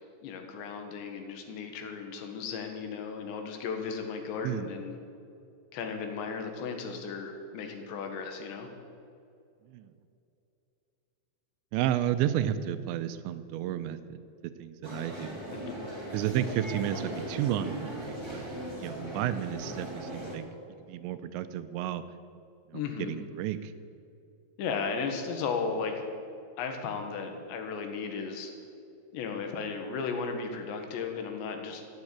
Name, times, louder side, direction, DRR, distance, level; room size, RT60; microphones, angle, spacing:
voice 1, 0.2-5.0 5.7-8.7 15.5-15.7 22.7-23.2 24.6-26.1 26.6-28.5 29.1-31.8, left 5 dB, 75° left, 4 dB, 3.7 m, -35 dB
voice 2, 11.7-15.4 16.1-18.4 18.8-20.5 20.9-22.0 22.7-23.7, right 11 dB, 85° right, 12 dB, 2.9 m, -32 dB
sound 1, 14.8-20.4, right 1 dB, 10° right, 1.2 m, -38 dB
14.5 x 9.5 x 8.7 m, 2.6 s
omnidirectional pair, 5.2 m